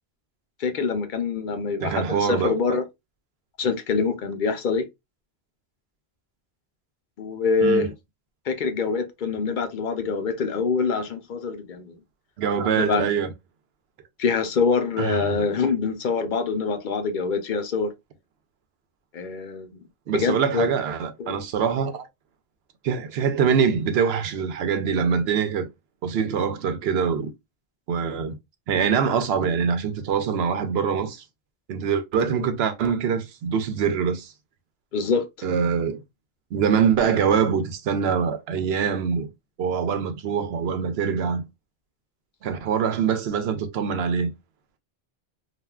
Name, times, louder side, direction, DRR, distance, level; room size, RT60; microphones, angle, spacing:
voice 1, 0.6-2.9 3.6-4.8 7.2-7.9 8.5-12.0 12.6-13.1 14.2-17.9 19.1-19.7 20.1-20.7 21.2-21.4 34.9-35.2, left 5 dB, 60° left, 0.7 m, -25 dB
voice 2, 1.8-2.8 7.6-7.9 12.4-13.3 15.0-15.4 20.1-22.1 22.8-25.7 26.0-27.3 27.9-28.4 28.7-31.2 31.7-34.3 35.4-36.0 36.5-39.3 39.6-41.4 42.4-44.3, right 6 dB, 80° right, 0.9 m, -24 dB
3.3 x 2.4 x 2.2 m
omnidirectional pair, 1.0 m